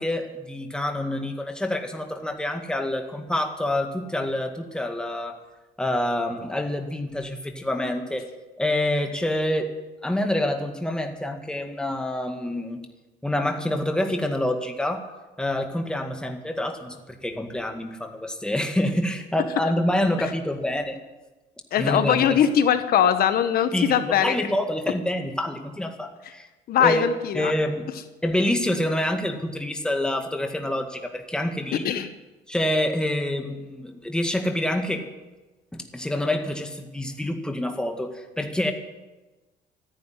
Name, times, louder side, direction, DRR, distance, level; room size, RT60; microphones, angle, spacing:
voice 1, 0.0-5.4 5.8-8.3 8.6-9.7 10.0-12.8 13.2-15.1 15.4-21.0 21.8-22.4 23.7-26.5 26.8-27.1 27.3-27.9 28.2-31.9 32.5-35.0 35.7-38.7, left 1 dB, 5° left, 4 dB, 1.9 m, -27 dB
voice 2, 21.7-24.5 26.7-27.5 31.8-32.1, left 9 dB, 65° left, 10 dB, 1.1 m, -21 dB
14.0 x 10.5 x 9.6 m, 1.1 s
cardioid pair, 110°, 17 cm